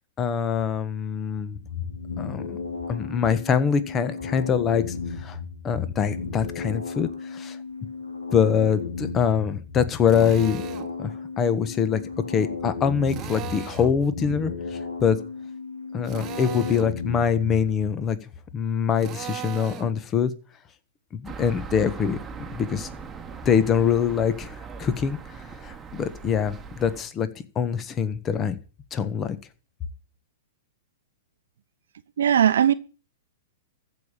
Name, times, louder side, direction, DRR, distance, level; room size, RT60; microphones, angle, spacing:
voice 1, 0.2-1.6 2.2-2.6 2.9-4.8 5.2-5.4 5.6-7.6 8.3-10.6 11.0-12.0 12.3-15.2 15.9-18.2 18.5-20.3 21.1-22.2 22.6-22.9 23.4-27.3 27.5-28.6 28.9-29.4, left 7 dB, 25° left, 1.4 m, -24 dB
sound 1, 1.6-17.7, left 5 dB, 85° left, 2.7 m, -34 dB
Drill, 10.1-10.9 13.1-14.0 16.0-16.9 19.0-19.9, right 11 dB, 30° right, 1.2 m, -37 dB
sound 2, 21.2-27.0, right 5 dB, 15° right, 1.5 m, -40 dB
voice 2, 32.2-32.7, right 9 dB, 70° right, 0.8 m, -18 dB
14.5 x 5.4 x 8.8 m
hypercardioid pair, 110°, 0 cm